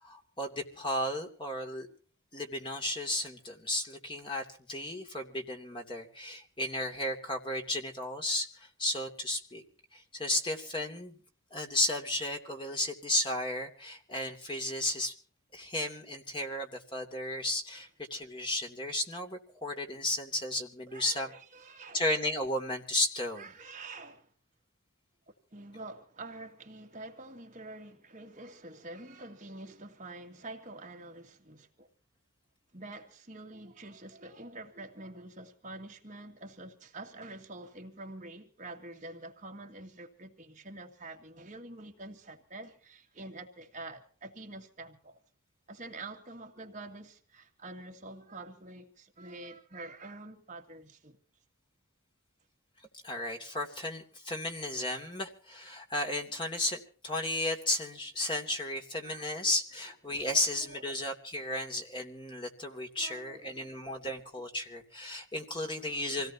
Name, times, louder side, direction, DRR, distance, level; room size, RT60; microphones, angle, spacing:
voice 1, 0.0-1.9 2.3-9.6 9.9-11.2 11.5-15.1 15.5-21.3 21.9-23.5 52.9-66.3, left 1 dB, 25° left, 2.8 m, -34 dB
voice 2, 20.9-22.0 23.4-24.3 25.3-31.9 32.7-45.2 45.7-51.2 59.0-59.5 60.2-60.4 60.7-60.8 63.0-63.7 65.7-66.0, right 2 dB, 35° right, 2.3 m, -47 dB
27.0 x 18.0 x 2.9 m
head